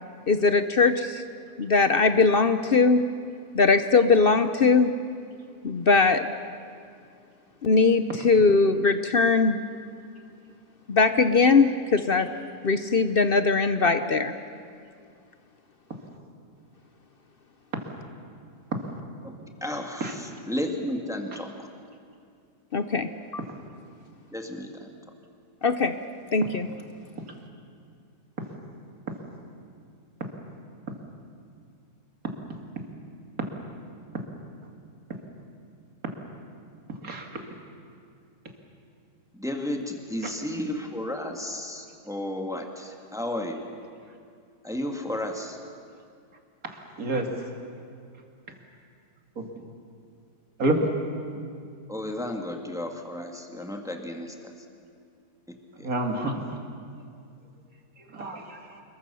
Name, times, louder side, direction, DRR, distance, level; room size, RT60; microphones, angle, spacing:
voice 1, 0.3-1.2 1.6-3.0 3.5-4.9 5.6-6.3 7.6-9.6 10.9-12.3 12.6-14.3 22.7-23.4 25.6-25.9 26.3-26.7, left 4 dB, 50° left, 10 dB, 0.7 m, -20 dB
voice 2, 19.2-21.5 24.3-24.9 39.3-43.6 44.6-45.6 51.9-54.5 55.5-55.9, left 1 dB, ahead, 3 dB, 1.8 m, -33 dB
voice 3, 37.0-37.4 40.2-40.3 47.0-47.3 49.4-49.5 50.6-50.9 55.8-56.4 58.1-58.6, right 2 dB, 55° right, 3 dB, 2.8 m, -27 dB
27.0 x 22.0 x 6.9 m, 2.3 s
omnidirectional pair, 1.7 m